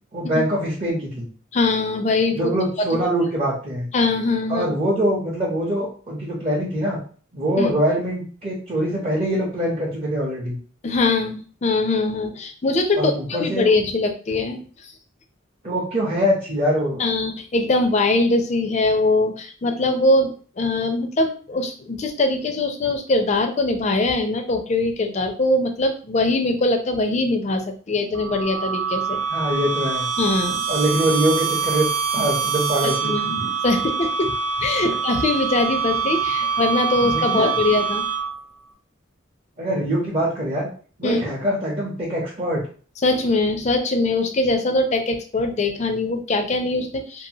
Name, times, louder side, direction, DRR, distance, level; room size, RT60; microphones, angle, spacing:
voice 1, 0.1-1.3 2.4-3.9 4.5-7.0 7.3-10.6 13.0-13.7 15.6-17.0 29.3-30.1 30.7-33.5 37.0-37.5 39.6-40.7 41.0-42.6, equal, 35° right, -6 dB, 0.7 m, -23 dB
voice 2, 1.5-2.5 2.8-3.0 3.9-4.7 7.6-7.7 10.8-14.6 17.0-27.6 27.9-29.2 30.2-30.6 32.8-33.4 33.6-38.0 41.0-41.2 43.0-47.3, left 2 dB, 35° left, 5 dB, 0.4 m, -22 dB
sound 1, 28.1-38.5, right 6 dB, 70° right, 0.4 m, -25 dB
2.7 x 2.4 x 2.7 m, 0.41 s
head